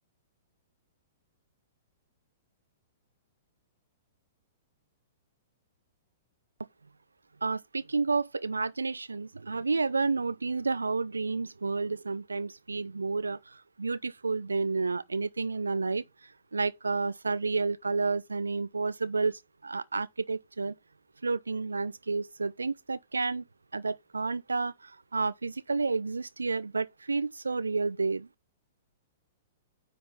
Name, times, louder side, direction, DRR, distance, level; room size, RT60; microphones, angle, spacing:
voice 1, 7.4-16.0 16.5-20.7 21.2-23.5 23.7-28.3, right 4 dB, 80° right, 0.6 m, -30 dB
9.7 x 4.0 x 5.5 m
figure-of-eight pair, 110°, 0 cm